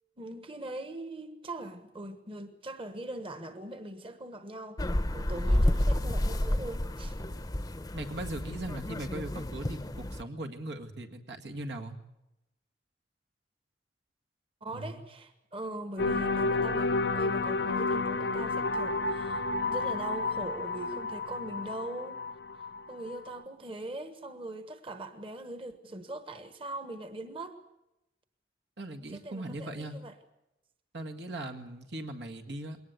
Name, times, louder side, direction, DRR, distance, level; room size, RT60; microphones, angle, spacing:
voice 1, 0.2-4.8 5.1-7.1 14.6-27.6 29.1-30.1, right 1 dB, 30° right, 9 dB, 1.3 m, -41 dB
sound 1, 4.8-10.2, left 1 dB, 20° left, 0.7 m, -30 dB
voice 2, 5.5-5.9 7.9-12.0 14.7-15.0 28.8-30.0 30.9-32.8, right 1 dB, 80° right, 3 dB, 1.9 m, -39 dB
sound 2, 16.0-23.4, left 3 dB, 80° left, 0.8 m, -31 dB
21.5 x 18.5 x 8.1 m, 0.92 s
head